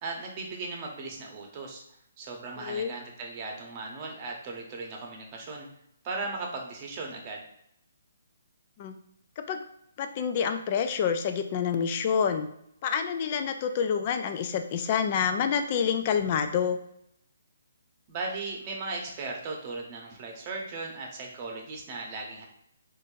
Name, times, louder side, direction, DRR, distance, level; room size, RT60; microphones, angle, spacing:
voice 1, 0.0-1.8 2.2-5.7 6.0-7.4 18.1-22.5, right 3 dB, 30° right, 0 dB, 0.9 m, -37 dB
voice 2, 10.0-12.5 12.8-16.8, left 7 dB, 35° left, 7 dB, 0.4 m, -27 dB
4.3 x 2.5 x 2.6 m, 0.75 s
hypercardioid pair, 150°, 0 cm